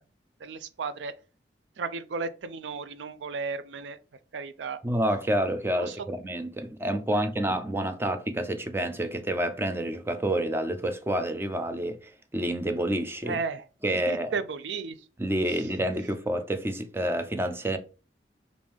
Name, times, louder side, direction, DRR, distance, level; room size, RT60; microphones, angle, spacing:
voice 1, 0.4-1.2 1.8-4.0 4.3-4.8 5.8-6.0 13.2-15.0 15.5-15.6, right 4 dB, 80° right, 0.4 m, -34 dB
voice 2, 4.8-13.3 13.8-14.3 15.2-17.8, right 1 dB, 15° right, 0.4 m, -28 dB
4.9 x 2.6 x 3.4 m
head